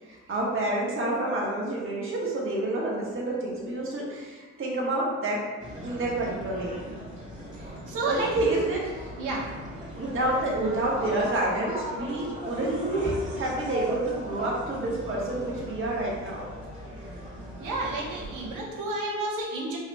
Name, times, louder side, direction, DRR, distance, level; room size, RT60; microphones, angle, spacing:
voice 1, 0.0-5.4 5.8-6.8 8.0-8.8 10.0-16.4 17.6-17.7, right 2 dB, 45° right, -4 dB, 1.2 m, -28 dB
sound 1, 5.6-18.6, equal, 25° right, 1.4 m, -38 dB
voice 2, 7.9-8.3 9.2-9.4 17.6-19.8, right 2 dB, 85° right, -2 dB, 0.9 m, -30 dB
4.7 x 2.9 x 2.2 m, 1.4 s
cardioid pair, 90°, 30 cm